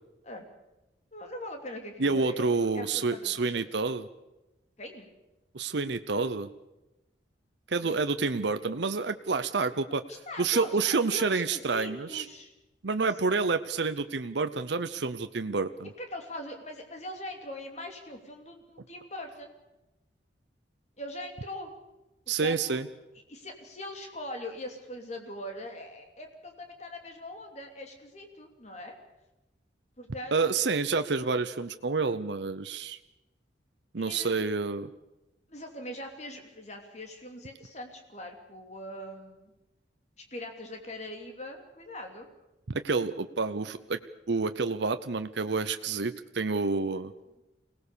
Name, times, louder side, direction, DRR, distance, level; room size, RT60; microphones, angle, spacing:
voice 1, 1.1-3.7 4.8-5.1 7.8-8.0 10.1-12.5 16.0-19.5 21.0-21.7 22.3-22.8 23.3-28.9 30.0-30.5 34.0-34.4 35.5-39.5 40.2-42.3, left 1 dB, 35° left, 4 dB, 3.1 m, -41 dB
voice 2, 2.0-4.1 5.5-6.5 7.7-10.0 10.4-12.2 12.8-15.9 22.3-22.9 30.3-33.0 33.9-34.9 42.7-44.0 44.3-47.1, right 4 dB, 65° right, 10 dB, 0.7 m, -28 dB
24.5 x 18.5 x 6.9 m, 0.97 s
head